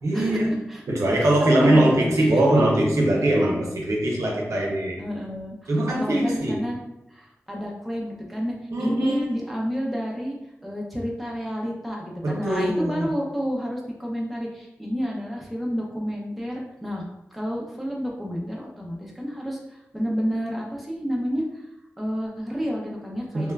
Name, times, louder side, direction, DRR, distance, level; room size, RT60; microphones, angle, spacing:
voice 1, 0.0-5.0 5.7-6.7 8.7-9.2 12.2-13.1 23.3-23.5, right 1 dB, 75° right, -1 dB, 0.6 m, -22 dB
voice 2, 1.2-2.6 5.0-6.8 7.1-8.5 8.8-10.4 10.6-17.1 17.3-21.7 22.0-23.5, equal, ahead, -3 dB, 0.6 m, -30 dB
3.0 x 2.2 x 2.2 m, 0.91 s
wide cardioid pair, 75°, 5 cm